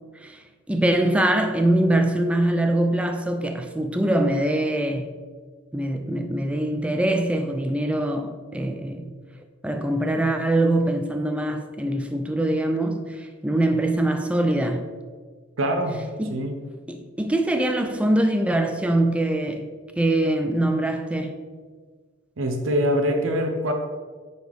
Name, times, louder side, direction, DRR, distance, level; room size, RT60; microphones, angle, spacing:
voice 1, 0.7-5.1 5.7-9.1 9.6-14.8 16.2-16.4 16.9-19.7 20.0-21.4, right 1 dB, 5° right, 0.3 m, -23 dB
voice 2, 15.6-16.0 16.3-16.7 22.4-23.7, equal, 70° right, 0.7 m, -24 dB
9.6 x 4.0 x 3.5 m
head